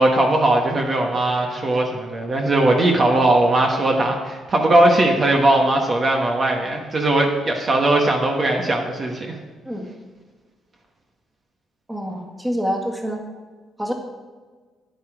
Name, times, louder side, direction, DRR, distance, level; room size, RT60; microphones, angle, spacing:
voice 1, 0.0-9.3, right 1 dB, 40° right, 1 dB, 1.3 m, -19 dB
voice 2, 11.9-13.2 13.8-13.9, equal, 5° right, 1 dB, 1.8 m, -26 dB
10.0 x 8.2 x 5.0 m, 1.4 s
cardioid pair, 90°, 0 cm